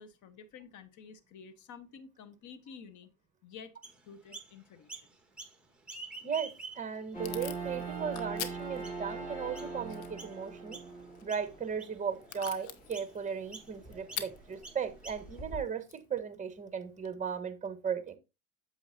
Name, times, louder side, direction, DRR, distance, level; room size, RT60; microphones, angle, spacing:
voice 1, 0.0-3.1 3.4-3.7 4.0-5.1, left 6 dB, 45° left, 1.4 m, -51 dB
Chirp tweet, 3.8-4.5 4.9-5.6 5.8-7.0 7.6-7.7 8.4-8.5 8.8-9.1 9.5-9.7 10.2-10.4 10.7-11.0 11.3-12.0 12.4-12.6 12.9-13.1 13.5-13.7 14.1-14.3 14.6-15.4, right 3 dB, ahead, 1.7 m, -47 dB
voice 2, 6.2-10.8 11.2-18.2, right 7 dB, 15° right, 1.4 m, -36 dB
Packing tape duct tape / Tearing, 6.3-17.1, left 11 dB, 80° left, 1.3 m, -48 dB
sound 1, 7.1-15.6, right 4 dB, 20° left, 3.6 m, -43 dB
8.8 x 7.1 x 2.8 m
supercardioid pair, 105°, 41 cm